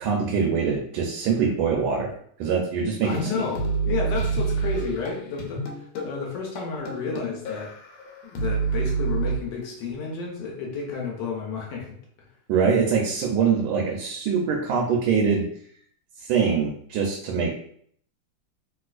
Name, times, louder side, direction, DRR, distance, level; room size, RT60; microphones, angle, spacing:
voice 1, 0.0-2.1 2.4-3.4 12.5-15.4 16.2-17.6, right 6 dB, 80° right, 0 dB, 1.4 m, -23 dB
sound 1, 3.0-9.4, right 4 dB, 85° left, 1.5 m, -28 dB
voice 2, 3.0-5.6 6.0-7.7 8.2-11.9, left 5 dB, 70° left, -1 dB, 1.2 m, -31 dB
3.1 x 3.0 x 2.4 m, 0.62 s
omnidirectional pair, 2.3 m